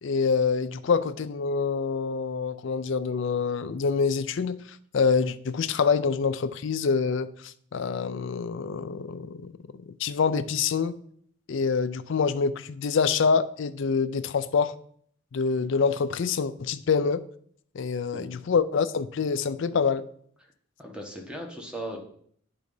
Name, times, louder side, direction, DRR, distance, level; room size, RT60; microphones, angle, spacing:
voice 1, 0.0-4.6 4.9-9.5 10.0-10.9 11.5-14.7 15.3-17.2 17.7-20.1, left 5 dB, 60° left, 0.4 m, -26 dB
voice 2, 20.8-22.0, right 1 dB, 5° right, 1.1 m, -37 dB
9.2 x 3.7 x 5.4 m
head